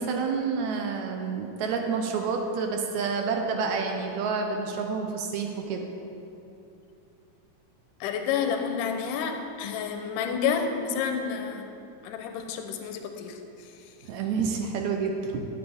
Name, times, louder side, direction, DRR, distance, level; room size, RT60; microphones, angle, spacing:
voice 1, 0.0-5.9 14.0-15.5, right 5 dB, 75° right, 3 dB, 1.7 m, -29 dB
voice 2, 8.0-11.6 12.0-13.7, left 7 dB, 85° left, 5 dB, 2.2 m, -30 dB
12.5 x 8.0 x 3.5 m, 2.8 s
omnidirectional pair, 3.8 m